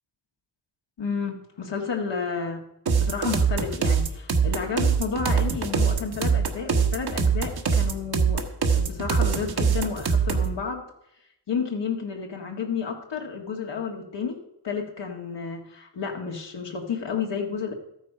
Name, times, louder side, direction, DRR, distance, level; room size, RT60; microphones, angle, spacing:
voice 1, 1.0-2.6 2.9-8.4 8.7-10.8 11.5-17.7, left 5 dB, 75° left, 1 dB, 1.8 m, -31 dB
sound 1, 2.9-10.5, right 6 dB, 60° right, 1.4 m, -23 dB
13.5 x 9.1 x 5.6 m, 0.79 s
wide cardioid pair, 135°, 43 cm